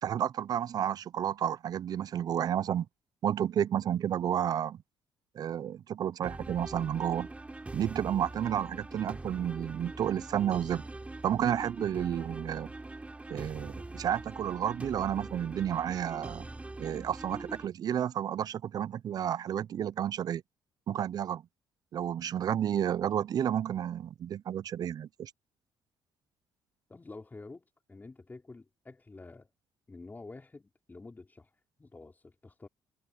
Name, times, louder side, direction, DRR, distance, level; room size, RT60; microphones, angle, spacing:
voice 1, 0.0-2.9 3.2-4.8 5.3-7.3 7.7-10.8 11.2-12.7 13.3-16.5 16.8-20.4 20.9-21.4 21.9-25.3, right 10 dB, 55° right, 0.5 m, -31 dB
sound 1, 6.2-17.7, right 2 dB, 15° right, 3.7 m, -43 dB
voice 2, 26.9-29.5 29.9-31.5 31.8-32.7, left 3 dB, 20° left, 4.8 m, -49 dB
supercardioid pair, 75°, 8 cm